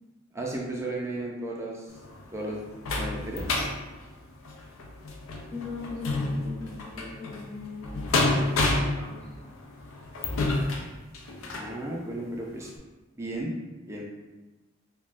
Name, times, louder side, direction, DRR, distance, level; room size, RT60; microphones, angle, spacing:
voice 1, 0.3-1.9 2.3-2.6 3.0-3.4 11.5-12.7 13.2-13.5 13.9-14.0, right 1 dB, 15° right, -2 dB, 0.3 m, -34 dB
sound 1, 1.9-11.7 12.3-12.4 12.8-12.9, left 2 dB, 90° left, 0.4 m, -30 dB
voice 2, 5.5-8.7 9.0-9.3, left 3 dB, 30° left, -8 dB, 0.7 m, -39 dB
3.4 x 2.1 x 2.4 m, 1.2 s
head